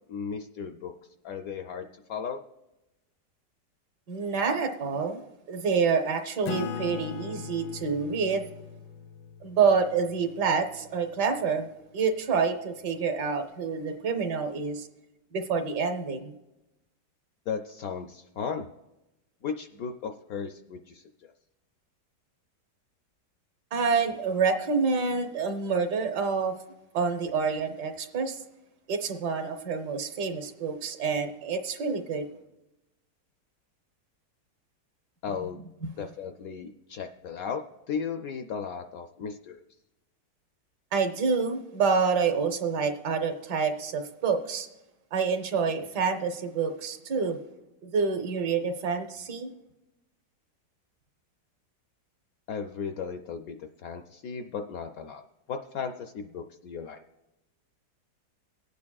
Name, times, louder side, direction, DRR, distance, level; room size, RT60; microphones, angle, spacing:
voice 1, 0.1-0.9 1.2-2.4 17.5-18.7 19.4-21.3 35.2-35.6 36.0-37.6 37.9-39.6 52.5-55.2 55.5-57.0, left 6 dB, 70° left, 6 dB, 0.9 m, -35 dB
voice 2, 4.1-5.2 5.5-8.5 9.4-11.7 11.9-14.9 15.3-16.3 23.7-26.6 26.9-28.4 28.9-32.3 35.8-35.9 40.9-44.7 45.1-47.4 47.8-49.5, right 5 dB, 70° right, 6 dB, 1.5 m, -27 dB
Acoustic guitar / Strum, 6.5-11.4, left 6 dB, 90° left, 1.3 m, -39 dB
20.0 x 8.5 x 2.3 m, 0.96 s
omnidirectional pair, 1.9 m